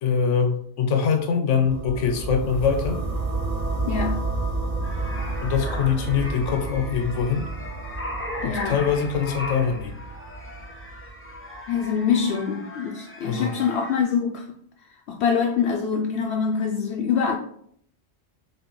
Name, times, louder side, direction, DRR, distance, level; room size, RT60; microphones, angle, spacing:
voice 1, 0.0-3.1 5.4-7.5 8.4-10.0 13.2-13.5, left 6 dB, 90° left, 1.1 m, -23 dB
sound 1, 1.6-11.6, right 3 dB, 40° right, 0.7 m, -31 dB
voice 2, 3.8-4.2 8.4-8.8 11.7-14.5 15.1-17.4, left 6 dB, 70° left, 0.8 m, -24 dB
sound 2, 4.8-14.0, left 1 dB, 15° left, 0.5 m, -38 dB
6.2 x 2.8 x 3.0 m
omnidirectional pair, 1.2 m